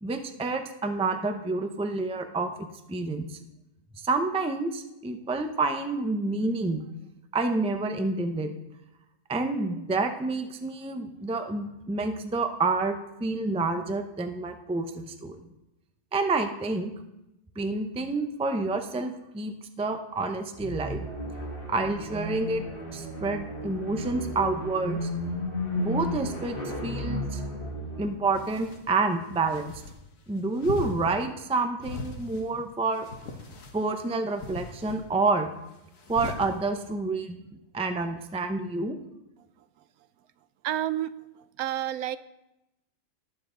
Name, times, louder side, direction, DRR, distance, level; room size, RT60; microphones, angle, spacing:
voice 1, 0.0-3.4 4.0-6.8 7.3-8.5 9.3-15.4 16.1-16.9 17.6-21.1 21.7-22.6 22.9-25.1 25.7-26.6 26.8-27.4 28.0-29.7 30.3-33.1 33.7-35.5 36.1-37.4 37.7-39.0, right 3 dB, 10° right, 6 dB, 0.3 m, -28 dB
sound 1, 20.6-28.2, equal, 35° left, 2.1 m, -33 dB
sound 2, 28.3-28.9 29.4-30.0 30.6-31.2 31.8-32.5 32.9-33.8 34.4-35.0 36.0-36.5, left 3 dB, 60° left, 1.6 m, -39 dB
voice 2, 40.6-41.1 41.6-42.2, right 12 dB, 75° right, 15 dB, 1.0 m, -29 dB
18.5 x 7.3 x 3.8 m, 0.91 s
omnidirectional pair, 1.6 m